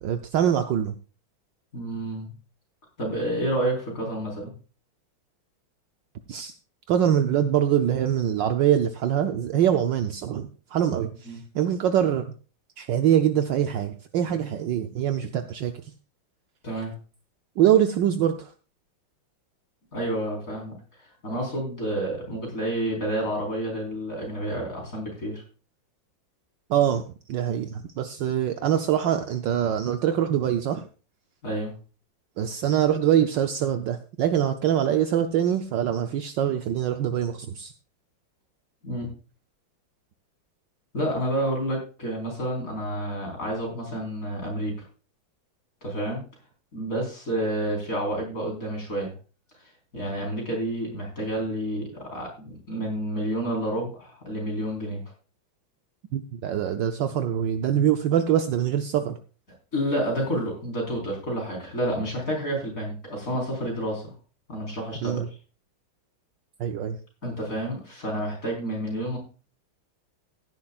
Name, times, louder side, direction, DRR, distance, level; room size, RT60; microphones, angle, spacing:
voice 1, 0.0-0.9 6.3-6.5 6.9-12.3 12.8-15.7 17.6-18.5 26.7-27.0 27.3-30.8 32.4-37.7 56.1-59.2 65.0-65.3 66.6-67.0, right 10 dB, 70° right, 7 dB, 1.3 m, -24 dB
voice 2, 1.7-2.3 3.0-4.5 11.2-11.4 16.6-16.9 19.9-20.8 21.2-25.4 31.4-31.7 38.8-39.1 40.9-44.9 45.8-46.2 46.7-49.1 49.9-55.0 59.7-64.1 64.5-65.4 67.2-69.2, right 1 dB, 40° left, 0 dB, 4.8 m, -29 dB
15.5 x 11.0 x 2.4 m, 0.36 s
omnidirectional pair, 2.2 m